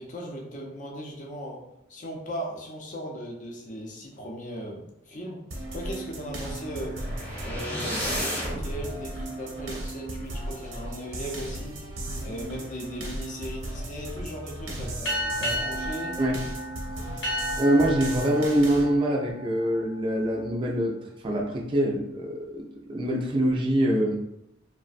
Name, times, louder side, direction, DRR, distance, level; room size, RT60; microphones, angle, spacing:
voice 1, 0.0-1.6 1.9-5.4 5.7-6.9 7.4-11.8 12.2-16.4, equal, 40° left, -1 dB, 0.5 m, -38 dB
sound 1, 5.5-18.8, right 1 dB, 85° right, 0.7 m, -36 dB
sound 2, 6.5-8.7, equal, 10° left, 0.8 m, -32 dB
sound 3, 15.0-20.1, equal, 75° left, 0.8 m, -33 dB
voice 2, 17.6-20.9 21.2-24.2, right 1 dB, 25° right, -1 dB, 0.3 m, -24 dB
3.1 x 2.0 x 2.5 m, 0.85 s
head